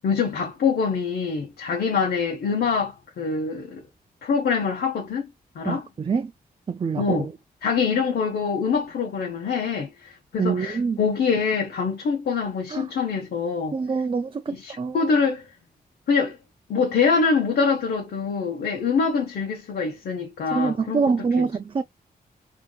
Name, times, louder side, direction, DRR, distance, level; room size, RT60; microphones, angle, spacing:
voice 1, 0.0-3.8 4.2-5.3 5.5-5.9 7.0-7.3 7.6-13.7 14.5-15.5 16.1-16.4 16.7-21.0 21.4-21.5, left 5 dB, 85° left, 1.0 m, -24 dB
voice 2, 5.6-6.3 6.7-7.3 10.4-11.0 12.7-12.8 13.7-15.0 20.5-21.8, right 5 dB, 35° right, 0.4 m, -25 dB
3.6 x 2.9 x 2.3 m
cardioid pair, 75°, 16 cm